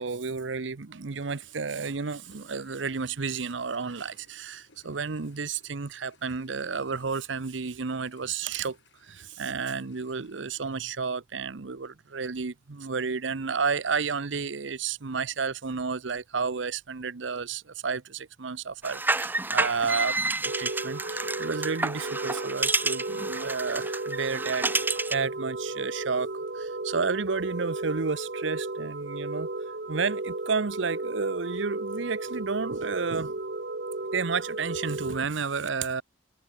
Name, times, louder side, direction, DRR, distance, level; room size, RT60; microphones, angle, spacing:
voice 1, 0.0-26.3 26.5-29.5 29.9-33.4 34.1-36.0, right 5 dB, 75° right, 0.8 m, -31 dB
sound 1, 1.1-11.0, left 4 dB, 70° left, 6.5 m, -62 dB
sound 2, 18.8-25.3, right 3 dB, 10° right, 0.6 m, -30 dB
sound 3, 20.4-35.2, right 2 dB, 55° right, 1.2 m, -34 dB
head